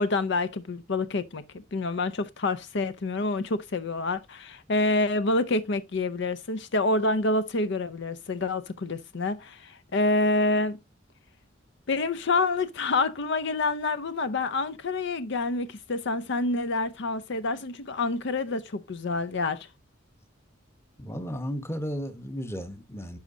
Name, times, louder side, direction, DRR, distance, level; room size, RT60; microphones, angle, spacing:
voice 1, 0.0-1.4 1.7-10.8 11.9-19.7, left 2 dB, 65° left, 0.6 m, -27 dB
voice 2, 21.0-23.2, equal, 15° left, 1.0 m, -34 dB
10.5 x 6.2 x 2.7 m
head